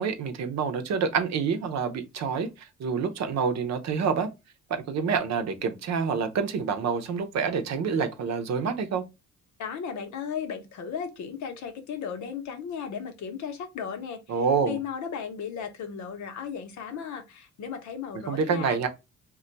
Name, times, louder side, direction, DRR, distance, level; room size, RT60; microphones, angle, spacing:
voice 1, 0.0-4.3 4.7-9.0 14.3-14.8 18.3-18.9, right 6 dB, 60° right, 0.7 m, -27 dB
voice 2, 9.6-18.8, left 7 dB, 70° left, 0.8 m, -35 dB
2.3 x 2.2 x 3.9 m
cardioid pair, 90°, 30 cm